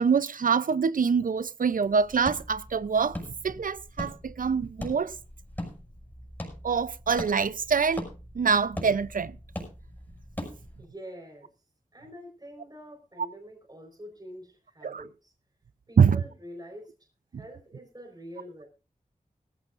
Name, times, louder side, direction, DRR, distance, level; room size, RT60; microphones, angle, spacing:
voice 1, 0.0-3.2 3.4-5.1 6.6-8.1 8.4-9.4 14.8-15.0 16.0-16.2 17.3-17.4, right 6 dB, 75° right, 0.6 m, -25 dB
sound 1, 1.8-10.8, left 1 dB, 15° left, 6.2 m, -41 dB
voice 2, 10.8-11.5 11.9-15.3 15.9-16.9 17.3-18.7, equal, 30° right, 4.4 m, -45 dB
18.5 x 15.0 x 2.5 m
wide cardioid pair, 70°, 14 cm